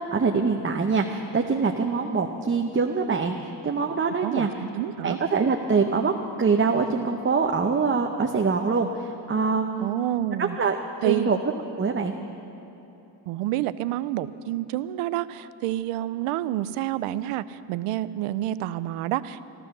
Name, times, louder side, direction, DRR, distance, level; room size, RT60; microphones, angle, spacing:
voice 1, 0.1-3.3 3.6-4.5 5.0-6.1 6.4-9.9 10.4-10.8 11.0-11.4 11.8-12.1, right 5 dB, 25° right, 3 dB, 0.8 m, -24 dB
voice 2, 4.2-5.2 9.8-10.6 11.0-11.3 13.3-19.4, right 13 dB, 85° right, 15 dB, 0.6 m, -28 dB
14.0 x 13.0 x 6.6 m, 2.9 s
cardioid pair, 90°, 50 cm